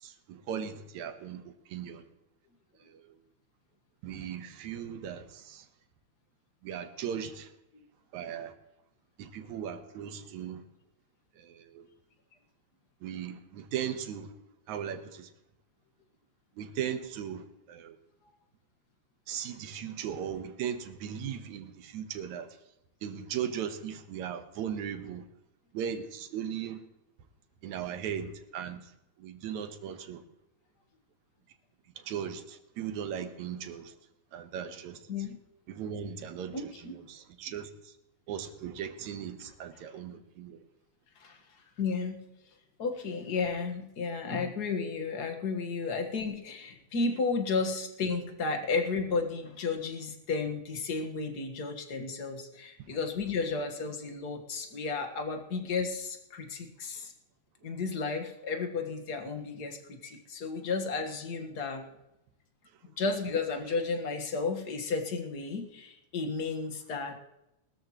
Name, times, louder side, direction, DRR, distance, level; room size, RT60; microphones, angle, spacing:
voice 1, 0.0-2.0 2.9-3.0 4.0-5.7 6.6-7.5 8.1-8.5 9.2-10.6 11.4-11.9 13.0-14.3 14.7-15.3 16.6-18.0 19.3-22.5 23.0-25.3 25.7-26.8 27.6-28.8 29.2-30.2 32.0-33.9 34.3-35.0 35.7-37.9 38.3-40.6 52.9-53.0, right 8 dB, 80° right, 2.4 m, -38 dB
voice 2, 36.5-37.0 41.2-41.4 41.8-42.2 42.8-57.1 57.6-61.8 62.8-67.2, left 4 dB, 40° left, 1.6 m, -33 dB
21.5 x 13.5 x 3.1 m
omnidirectional pair, 3.3 m